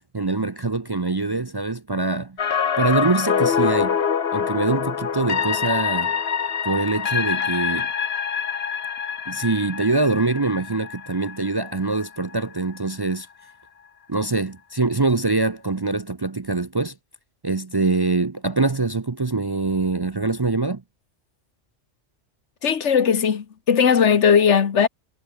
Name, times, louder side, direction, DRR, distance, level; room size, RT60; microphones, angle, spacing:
voice 1, 0.0-2.4 2.8-4.0 4.3-6.1 6.6-7.9 9.3-13.3 14.1-16.9 17.4-20.8, right 3 dB, 30° right, 0.5 m, -24 dB
sound 1, 2.4-12.4 12.8-12.9, left 7 dB, 60° left, 1.3 m, -25 dB
voice 2, 22.6-24.9, left 7 dB, 85° left, 1.5 m, -18 dB
omnidirectional pair, 1.2 m